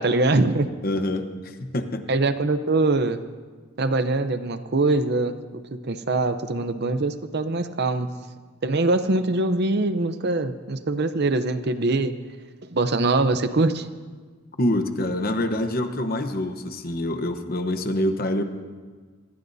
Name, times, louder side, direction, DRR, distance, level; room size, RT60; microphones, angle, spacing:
voice 1, 0.0-0.7 2.1-3.2 3.8-8.1 8.6-12.1 12.7-13.9, right 2 dB, 50° right, 10 dB, 0.7 m, -23 dB
voice 2, 0.8-2.1 14.6-18.4, left 1 dB, 45° left, 7 dB, 1.0 m, -26 dB
26.0 x 20.5 x 2.7 m, 1.5 s
head